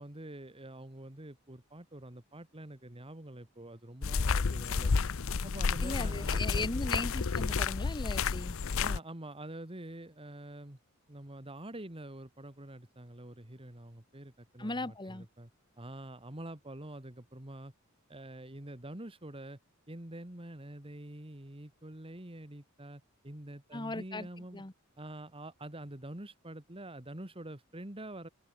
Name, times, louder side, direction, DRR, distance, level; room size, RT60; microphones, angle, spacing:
voice 1, 0.0-4.9 5.4-6.6 8.8-10.8 11.1-15.5 15.8-17.7 18.1-19.6 19.9-24.6 25.0-28.3, right 1 dB, 25° right, 2.2 m, -46 dB
sound 1, 4.0-9.0, left 5 dB, 70° left, 0.7 m, -31 dB
voice 2, 5.8-8.6 14.6-15.2 23.7-24.3 24.5-24.7, left 2 dB, 20° left, 1.5 m, -37 dB
open air
head